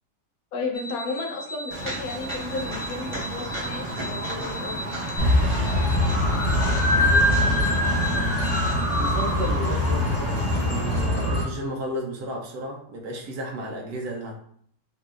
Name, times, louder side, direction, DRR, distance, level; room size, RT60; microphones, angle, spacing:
voice 1, 0.5-4.9, left 3 dB, 75° left, 2 dB, 1.3 m, -33 dB
sound 1, 0.7-9.5, equal, 50° right, 0.5 m, -39 dB
Walk footsteps, 1.7-11.0, right 1 dB, 25° right, 0.9 m, -33 dB
sound 2, 5.2-11.4, left 1 dB, 15° left, 1.4 m, -22 dB
voice 2, 8.9-14.3, right 1 dB, 90° right, -1 dB, 1.3 m, -33 dB
5.3 x 2.7 x 2.5 m, 0.62 s
omnidirectional pair, 1.6 m